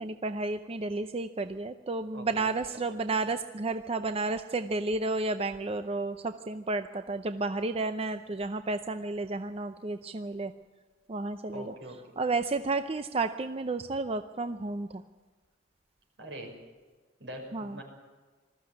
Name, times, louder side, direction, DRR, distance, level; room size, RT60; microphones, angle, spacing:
voice 1, 0.0-10.5 11.1-11.7 12.2-15.0 17.5-17.8, right 3 dB, 30° right, 9 dB, 0.6 m, -32 dB
voice 2, 2.1-2.5 11.5-12.0 16.2-16.5 17.2-17.8, right 1 dB, 75° right, 2 dB, 5.7 m, -42 dB
20.5 x 14.0 x 9.6 m, 1.4 s
head